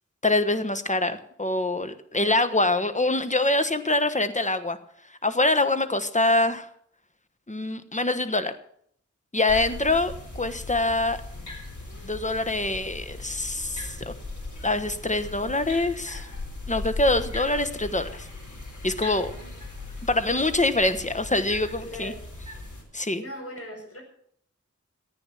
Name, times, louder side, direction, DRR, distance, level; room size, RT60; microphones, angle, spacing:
voice 1, 0.2-4.8 5.2-6.7 7.5-8.5 9.3-11.2 12.0-14.1 14.6-16.3 16.7-18.3 18.8-19.3 20.1-22.1 22.9-23.2, left 2 dB, 25° left, 9 dB, 1.2 m, -25 dB
sound 1, 9.5-22.8, left 2 dB, 80° left, 3.9 m, -38 dB
voice 2, 9.5-9.9 19.1-19.5 21.8-22.2 23.2-24.0, equal, 50° left, 2 dB, 4.9 m, -40 dB
14.5 x 9.2 x 7.2 m, 0.66 s
wide cardioid pair, 55°, 29 cm